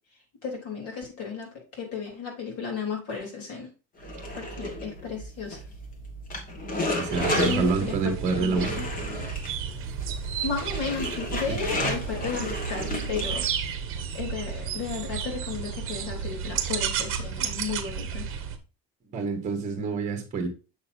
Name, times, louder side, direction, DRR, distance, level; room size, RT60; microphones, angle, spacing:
voice 1, 0.4-3.7 4.3-5.6 7.4-8.9 10.4-13.5 14.1-18.3, left 5 dB, 50° left, 0 dB, 3.6 m, -34 dB
sound 1, 4.0-13.7, left 1 dB, 25° left, 1.5 m, -33 dB
voice 2, 7.0-8.7 11.5-11.9 19.1-20.5, right 4 dB, 25° right, 4 dB, 1.5 m, -28 dB
sound 2, 7.1-18.6, right 7 dB, 45° right, 1.1 m, -32 dB
7.2 x 6.5 x 2.7 m, 0.33 s
cardioid pair, 175°, 30 cm